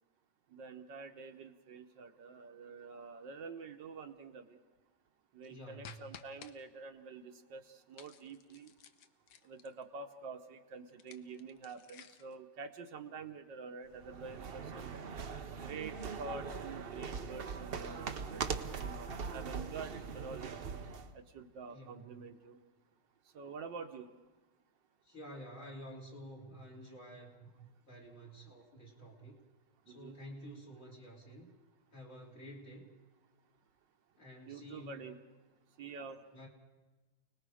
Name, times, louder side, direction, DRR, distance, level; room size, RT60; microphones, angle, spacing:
voice 1, 0.5-4.6 5.3-8.7 9.4-14.9 15.5-20.6 21.1-22.6 23.2-24.1 29.9-30.2 34.5-35.2 35.7-36.2, right 4 dB, 70° right, 6 dB, 1.6 m, -47 dB
voice 2, 5.5-6.0 21.7-22.0 25.0-29.4 29.9-31.5 31.9-32.9 34.2-35.1 36.3-36.5, equal, 45° left, 0 dB, 3.6 m, -50 dB
sound 1, 5.8-6.5 7.9-9.8 10.9-12.4, left 8 dB, 65° left, 1.3 m, -55 dB
sound 2, 13.9-21.1, right 5 dB, 50° right, 0.7 m, -41 dB
29.5 x 20.0 x 4.9 m, 1.2 s
omnidirectional pair, 2.1 m